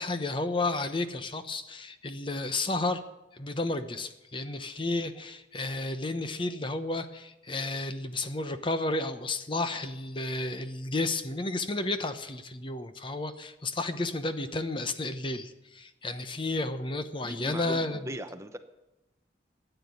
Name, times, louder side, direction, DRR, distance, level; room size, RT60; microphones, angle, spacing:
voice 1, 0.0-3.0 3.3-18.1, left 2 dB, 30° left, 10 dB, 0.9 m, -32 dB
voice 2, 17.2-18.6, equal, 15° right, 9 dB, 0.7 m, -39 dB
13.5 x 9.1 x 9.3 m, 0.99 s
head